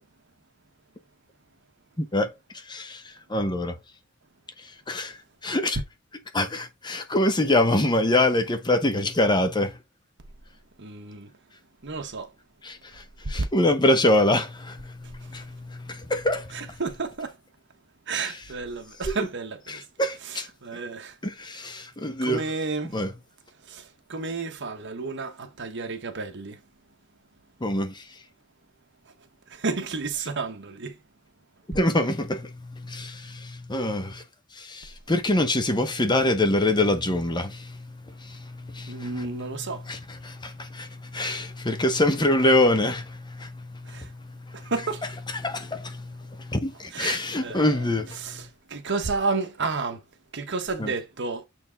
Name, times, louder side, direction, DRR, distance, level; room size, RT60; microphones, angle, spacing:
voice 1, 2.0-3.8 4.6-5.2 5.4-5.8 6.3-9.8 12.6-16.7 18.1-18.3 19.7-20.5 21.2-22.4 22.9-23.1 27.6-28.0 31.7-34.2 34.5-39.3 39.9-44.7 45.3-48.2 50.8-50.9, left 1 dB, 20° left, 1.0 m, -25 dB
voice 2, 10.8-11.3 11.8-12.3 13.2-13.5 15.0-15.3 16.5-17.4 18.1-19.9 20.2-21.2 22.2-23.0 23.6-26.6 29.0-29.1 29.5-31.0 31.7-31.8 38.9-39.9 43.8-44.1 44.5-45.1 46.9-47.9 48.1-50.0 50.3-51.4, right 4 dB, 60° right, 1.3 m, -31 dB
7.2 x 4.6 x 3.6 m
head